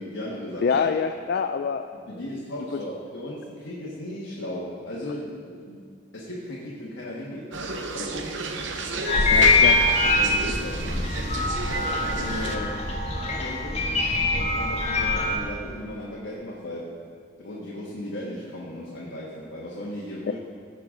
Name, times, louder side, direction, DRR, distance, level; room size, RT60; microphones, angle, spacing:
voice 1, 0.0-0.9 1.9-5.9 6.1-7.5 7.9-8.4 10.1-11.3 11.7-12.8 13.2-13.9 14.3-16.9 17.4-20.4, left 1 dB, 75° left, -6 dB, 1.5 m, -36 dB
voice 2, 0.6-1.8 9.3-9.8, left 6 dB, 55° left, 7 dB, 0.3 m, -25 dB
sound 1, 7.5-12.6, right 3 dB, 70° right, 0.8 m, -32 dB
sound 2, 9.1-15.4, left 3 dB, 35° left, 1.2 m, -23 dB
16.5 x 6.7 x 3.8 m, 2.1 s
head